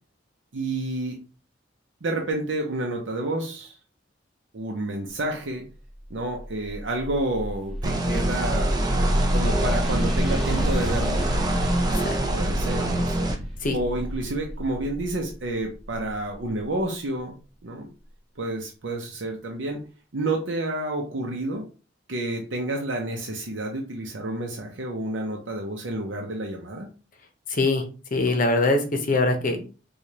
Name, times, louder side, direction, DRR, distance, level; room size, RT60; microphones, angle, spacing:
voice 1, 0.5-1.2 2.0-3.8 4.5-5.6 6.1-8.8 9.3-11.2 12.3-13.3 13.7-17.4 17.6-17.9 18.4-19.8 20.1-21.6 22.1-26.9, right 2 dB, 70° right, 1 dB, 0.7 m, -29 dB
sound 1, 5.8-16.6, equal, ahead, 1.0 m, -29 dB
sound 2, 7.8-13.4, right 1 dB, 20° right, 0.6 m, -26 dB
voice 2, 27.5-27.8 28.1-29.7, left 2 dB, 45° left, 5 dB, 0.8 m, -22 dB
4.8 x 2.4 x 2.8 m, 0.35 s
head